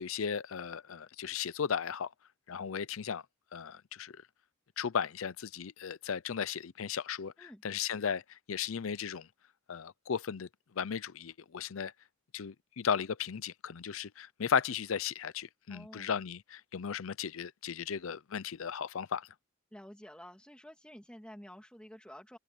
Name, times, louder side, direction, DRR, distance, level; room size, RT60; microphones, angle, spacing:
voice 1, 0.0-2.1 2.5-3.2 3.5-4.2 4.8-9.3 9.7-10.5 10.7-11.9 12.3-19.3, left 7 dB, 85° left, 0.6 m, -35 dB
voice 2, 15.7-16.1 19.7-22.4, equal, 5° left, 1.8 m, -50 dB
head